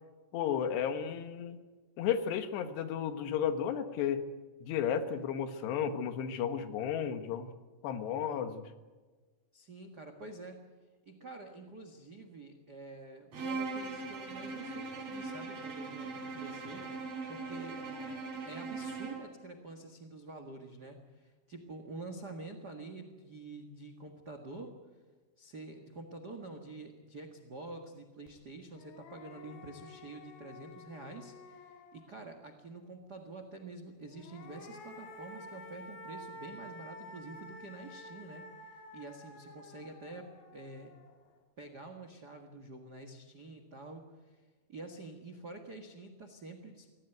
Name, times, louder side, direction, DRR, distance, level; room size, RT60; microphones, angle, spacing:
voice 1, 0.3-1.6 2.0-4.3 4.6-7.5 7.8-8.6, left 8 dB, 75° left, 9 dB, 3.5 m, -33 dB
voice 2, 9.5-10.6 11.0-16.8 17.3-17.8 18.5-24.8 25.4-38.5 38.9-40.9 41.6-44.4 44.7-46.9, right 2 dB, 65° right, 6 dB, 0.9 m, -47 dB
Bowed string instrument, 13.3-19.3, right 4 dB, 40° right, 4.7 m, -40 dB
sound 1, 28.3-28.4 28.7-32.4 34.0-41.3, left 2 dB, 60° left, 4.4 m, -51 dB
25.0 x 17.5 x 9.3 m, 1.3 s
omnidirectional pair, 5.1 m